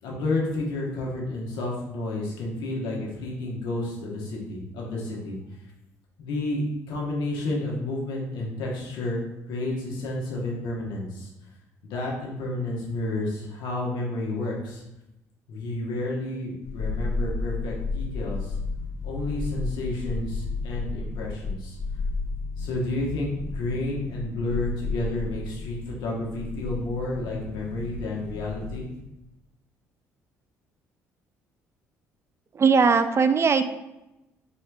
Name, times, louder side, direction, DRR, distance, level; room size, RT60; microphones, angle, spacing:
voice 1, 0.0-5.4 6.2-11.3 11.8-14.8 15.5-18.6 19.0-21.8 22.6-28.9, left 2 dB, 70° left, -2 dB, 1.0 m, -31 dB
sound 1, 16.6-29.0 29.3-29.4, left 3 dB, 45° left, 1.3 m, -33 dB
voice 2, 32.6-33.7, right 5 dB, 35° right, 9 dB, 0.3 m, -19 dB
4.3 x 3.6 x 2.3 m, 0.93 s
hypercardioid pair, 55°, 8 cm